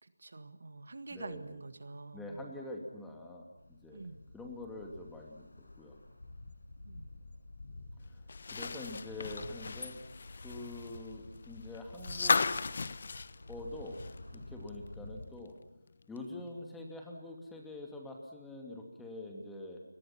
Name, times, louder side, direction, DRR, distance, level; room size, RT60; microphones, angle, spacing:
voice 1, 0.0-2.6 3.9-4.2 6.8-7.1, right 3 dB, 60° right, 10 dB, 1.8 m, -47 dB
voice 2, 1.1-1.6 2.1-5.5 5.8-6.0 8.1-8.2 8.5-10.0 10.4-12.4 13.5-14.0 14.3-15.5 16.1-19.8, left 2 dB, 5° left, 0 dB, 2.7 m, -45 dB
sound 1, 3.6-15.3, left 2 dB, 75° left, 6.4 m, -50 dB
sound 2, 8.3-14.3 14.7-14.8 16.2-16.3, left 4 dB, 50° left, 0.9 m, -35 dB
29.5 x 23.0 x 6.0 m, 0.88 s
figure-of-eight pair, 165°, 0 cm